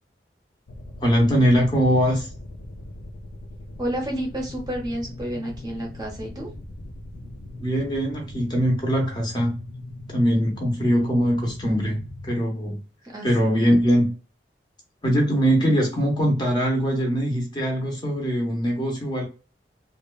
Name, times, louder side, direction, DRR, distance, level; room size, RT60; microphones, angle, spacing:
sound 1, 0.7-12.3, left 1 dB, 70° left, 0.4 m, -40 dB
voice 1, 1.0-2.3 7.6-9.5 10.1-12.8 13.2-14.1 15.0-19.2, equal, 25° left, 0.7 m, -22 dB
voice 2, 3.8-6.5 13.0-13.3, right 1 dB, 25° right, 0.6 m, -30 dB
2.8 x 2.1 x 2.3 m
head